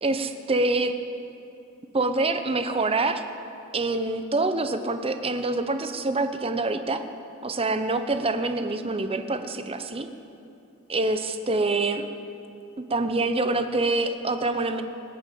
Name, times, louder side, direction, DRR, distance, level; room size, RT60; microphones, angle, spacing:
voice 1, 0.0-0.9 1.9-3.2 3.7-7.0 7.4-10.1 10.9-12.1 12.8-14.8, right 2 dB, 25° right, 8 dB, 0.8 m, -26 dB
20.0 x 8.7 x 7.8 m, 2.6 s
head